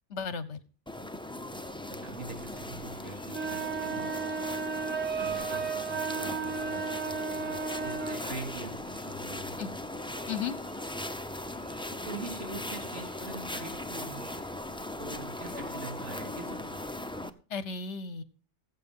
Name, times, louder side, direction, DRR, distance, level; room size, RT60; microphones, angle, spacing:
voice 1, 0.1-0.6 9.6-9.7 10.3-10.6 17.5-18.2, left 6 dB, 65° left, 14 dB, 1.3 m, -34 dB
sound 1, 0.9-17.3, left 1 dB, 5° left, 0.6 m, -39 dB
Fowl, 1.6-16.4, left 2 dB, 30° left, 4.2 m, -58 dB
voice 2, 1.9-4.1 5.2-9.6 12.0-14.2 15.0-16.7, right 2 dB, 65° right, 1 dB, 3.4 m, -43 dB
sound 2, 3.3-8.2, right 5 dB, 90° right, 1.7 m, -33 dB
20.0 x 7.9 x 3.7 m, 0.36 s
omnidirectional pair, 1.3 m